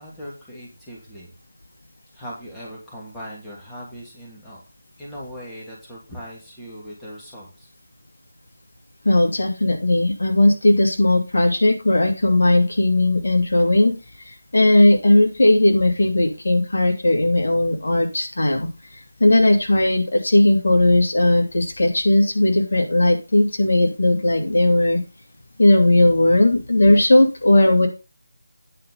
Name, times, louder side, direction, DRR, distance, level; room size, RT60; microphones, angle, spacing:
voice 1, 0.0-1.3 2.1-4.6 5.0-7.7, equal, 5° left, -6 dB, 2.8 m, -39 dB
voice 2, 9.0-13.9 14.2-25.0 25.6-27.9, left 1 dB, 60° left, 2 dB, 2.7 m, -17 dB
9.8 x 5.6 x 5.3 m, 0.29 s
figure-of-eight pair, 160°, 0 cm